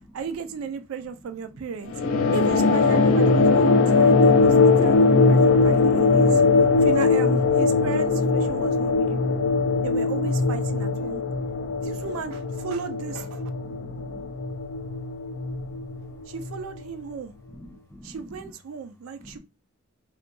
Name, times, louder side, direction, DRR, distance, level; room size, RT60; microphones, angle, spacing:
voice 1, 0.1-1.9 2.3-6.4 6.8-9.5 9.8-11.2 11.8-13.4 16.3-17.3 18.0-19.4, right 6 dB, 80° right, 0.4 m, -35 dB
sound 1, 1.9-16.8, left 3 dB, 70° left, 0.4 m, -20 dB
voice 2, 3.8-4.3 4.6-4.7 6.5-6.8 9.5-9.6 11.3-11.4 13.8-14.3 17.5-18.2 19.2-19.4, equal, 10° left, 0.7 m, -47 dB
2.6 x 2.5 x 2.2 m
head